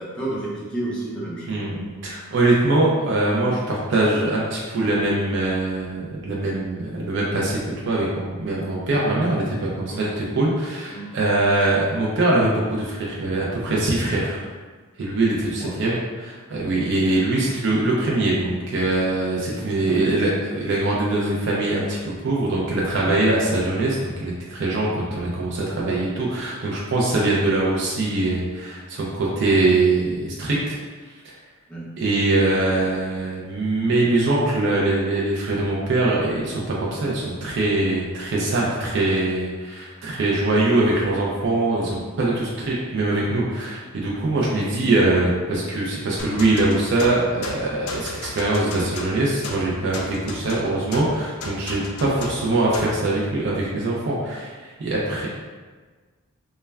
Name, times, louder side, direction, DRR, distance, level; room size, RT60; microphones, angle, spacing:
voice 1, 0.0-1.7 9.9-10.1 10.9-11.2 15.6-15.8 19.8-20.0 31.7-31.9, right 1 dB, 5° left, -7 dB, 0.5 m, -31 dB
voice 2, 1.5-14.5 15.0-30.8 32.0-55.3, right 2 dB, 55° right, -4 dB, 0.4 m, -22 dB
sound 1, 46.2-53.0, left 3 dB, 85° left, 0.4 m, -35 dB
2.2 x 2.1 x 3.2 m, 1.4 s
head